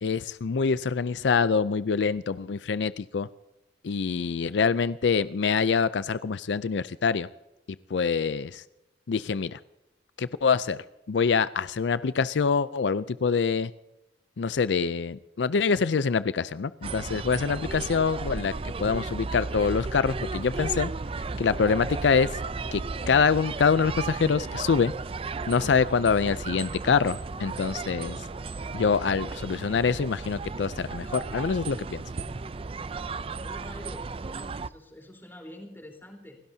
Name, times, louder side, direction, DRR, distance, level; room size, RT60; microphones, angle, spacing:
voice 1, 0.0-3.3 3.8-7.3 7.9-8.6 9.1-9.6 10.2-10.8 11.1-13.7 14.4-18.5 18.8-20.9 21.4-22.3 22.7-22.8 23.1-24.9 25.5-28.2 28.7-32.0, left 5 dB, 80° left, 15 dB, 0.5 m, -25 dB
sound 1, 16.8-34.7, right 3 dB, 30° right, 0.5 m, -35 dB
voice 2, 33.4-36.4, left 1 dB, 15° left, 2 dB, 3.8 m, -46 dB
29.0 x 16.5 x 2.8 m, 1.0 s
head